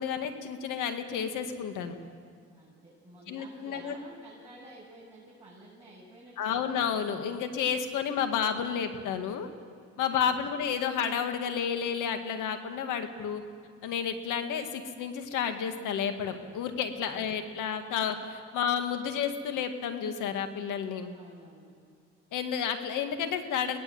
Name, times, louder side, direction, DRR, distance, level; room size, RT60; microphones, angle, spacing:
voice 1, 0.0-2.0 3.3-4.0 6.4-9.5 10.0-13.4 13.8-21.1 22.3-23.8, left 7 dB, 85° left, 7 dB, 2.1 m, -31 dB
voice 2, 2.5-6.8 10.2-10.6 17.1-17.5 21.1-21.7, right 2 dB, 10° right, -8 dB, 7.9 m, -52 dB
24.0 x 19.0 x 7.9 m, 2.2 s
cardioid pair, 90°, 30 cm